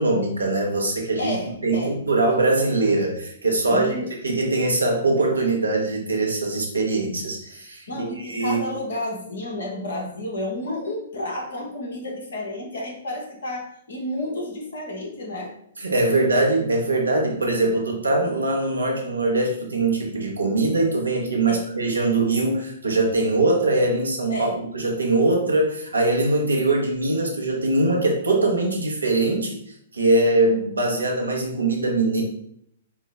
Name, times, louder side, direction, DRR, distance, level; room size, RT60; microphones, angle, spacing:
voice 1, 0.0-1.4 1.6-3.9 4.2-8.6 15.8-29.6 29.9-32.2, right 2 dB, 85° right, 0 dB, 1.0 m, -22 dB
voice 2, 1.2-2.0 3.6-4.1 7.9-15.5 21.5-21.7 24.3-24.5, left 1 dB, 65° left, 0 dB, 1.1 m, -31 dB
4.5 x 2.1 x 3.5 m, 0.69 s
figure-of-eight pair, 115°, 0 cm